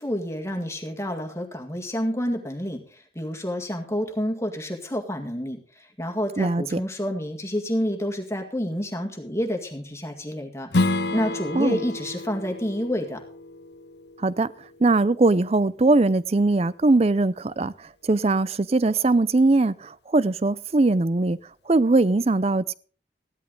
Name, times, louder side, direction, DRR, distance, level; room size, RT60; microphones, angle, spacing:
voice 1, 0.0-13.2, equal, 15° left, 1.9 m, -29 dB
voice 2, 6.4-6.8 11.5-11.8 14.2-14.5 14.8-21.4 21.7-22.7, right 2 dB, 35° right, 0.5 m, -21 dB
Strum, 10.7-15.9, left 2 dB, 75° left, 0.8 m, -30 dB
15.5 x 12.0 x 3.9 m
head